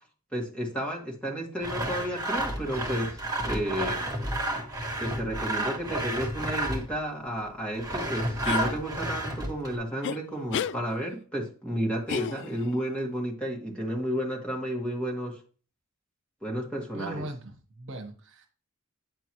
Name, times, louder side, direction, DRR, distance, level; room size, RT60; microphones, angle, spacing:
voice 1, 0.3-4.0 5.0-15.4 16.4-17.2, equal, 5° left, -1 dB, 1.8 m, -32 dB
Sawing, 1.6-7.0 7.7-9.8, right 1 dB, 15° right, 1.6 m, -31 dB
sound 1, 8.4-8.7 10.0-10.2 10.5-10.8 12.1-12.7, left 7 dB, 55° left, 0.3 m, -32 dB
voice 2, 16.9-18.5, right 1 dB, 55° right, 5 dB, 1.3 m, -39 dB
9.1 x 7.0 x 3.0 m, 0.38 s
head